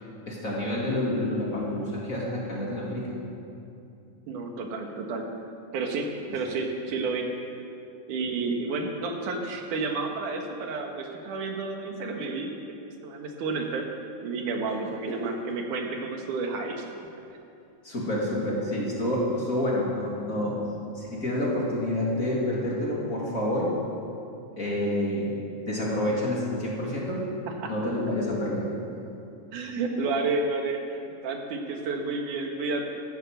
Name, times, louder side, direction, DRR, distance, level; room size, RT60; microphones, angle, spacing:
voice 1, 0.3-3.1 15.1-15.4 17.8-20.6 20.9-23.7 24.6-25.4 25.7-27.3 27.6-28.7, left 1 dB, 30° left, -4 dB, 2.6 m, -28 dB
voice 2, 4.3-5.3 5.7-7.3 8.1-12.5 13.0-13.8 14.2-17.1 27.5-27.7 29.5-32.9, right 3 dB, 90° right, 3 dB, 3.0 m, -31 dB
15.0 x 12.5 x 6.6 m, 2.6 s
omnidirectional pair, 3.5 m